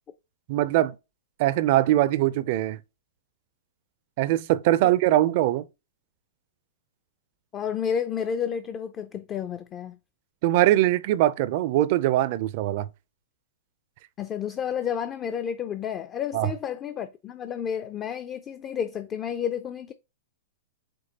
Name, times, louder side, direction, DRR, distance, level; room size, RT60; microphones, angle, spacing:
voice 1, 0.5-0.9 1.4-2.8 4.2-5.6 10.4-12.9 16.3-16.5, right 14 dB, 50° right, 0.4 m, -22 dB
voice 2, 7.5-10.0 14.2-19.9, left 8 dB, 25° left, 0.4 m, -31 dB
5.2 x 3.6 x 2.8 m
hypercardioid pair, 140°, 0 cm